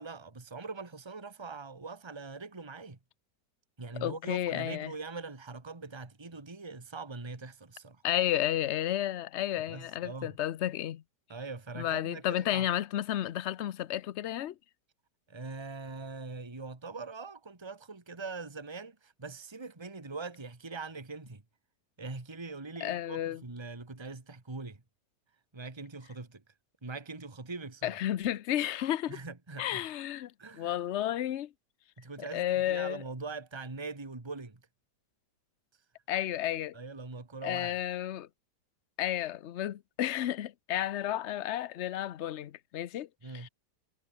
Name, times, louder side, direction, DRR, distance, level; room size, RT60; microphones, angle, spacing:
voice 1, 0.0-3.0 3.8-8.0 9.7-10.4 11.3-12.7 15.3-21.4 22.0-24.8 25.5-26.4 26.8-28.0 29.1-29.8 30.4-30.7 32.0-34.6 36.7-37.8 43.2-43.5, right 3 dB, 15° right, 1.8 m, -42 dB
voice 2, 4.0-4.9 8.0-11.0 11.8-14.5 22.8-23.4 27.8-29.2 29.6-30.3 30.6-31.5 32.3-33.0 36.1-36.8 37.4-38.3 39.0-43.1 43.3-43.5, left 12 dB, 60° left, 0.7 m, -32 dB
omnidirectional pair, 1.9 m